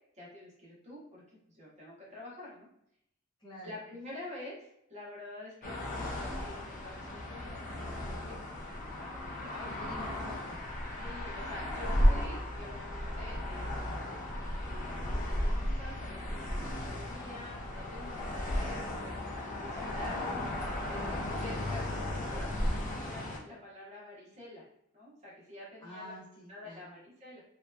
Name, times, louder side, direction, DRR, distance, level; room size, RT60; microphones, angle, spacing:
voice 1, 0.1-2.7 3.6-9.7 11.0-14.1 14.6-21.8 22.1-24.7 24.9-26.1 26.5-27.4, left 1 dB, 30° right, -6 dB, 0.8 m, -48 dB
voice 2, 3.4-3.8 9.6-10.6 19.9-20.6 25.8-26.9, equal, 20° left, -7 dB, 0.8 m, -49 dB
sound 1, 5.6-23.4, left 1 dB, 35° left, 0.4 m, -34 dB
2.7 x 2.2 x 2.2 m, 0.75 s
head